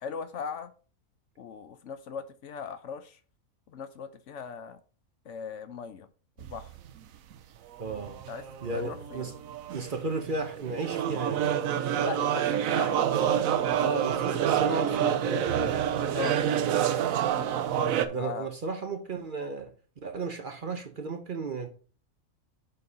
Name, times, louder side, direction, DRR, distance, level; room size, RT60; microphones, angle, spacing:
voice 1, 0.0-0.7 1.4-3.2 3.7-4.8 5.3-6.1 6.4-6.7 8.3-9.3 12.0-13.0 16.1-16.4 18.2-18.5, left 6 dB, 65° left, 0.9 m, -39 dB
sound 1, 6.4-7.0 7.3-7.4 7.8-18.1, right 9 dB, 75° right, 1.1 m, -28 dB
voice 2, 7.8-8.2 8.6-9.3 9.7-11.6 13.8-15.9 17.8-19.7 20.0-21.7, right 3 dB, 45° right, 0.8 m, -34 dB
7.6 x 4.1 x 5.4 m
omnidirectional pair, 1.4 m